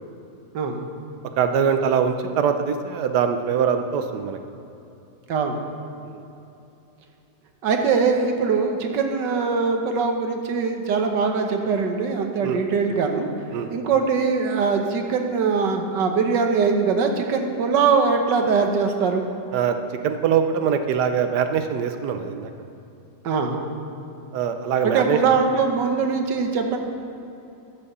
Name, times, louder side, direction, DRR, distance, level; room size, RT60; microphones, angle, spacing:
voice 1, 1.4-4.4 6.0-6.2 12.4-12.6 13.5-13.7 19.5-19.8 20.0-22.5 24.3-25.2, right 7 dB, 75° right, 8 dB, 1.3 m, -23 dB
voice 2, 7.6-13.3 13.7-19.3 23.2-23.6 24.8-26.8, right 5 dB, 90° right, 4 dB, 1.7 m, -22 dB
12.0 x 7.4 x 6.8 m, 2.9 s
omnidirectional pair, 1.8 m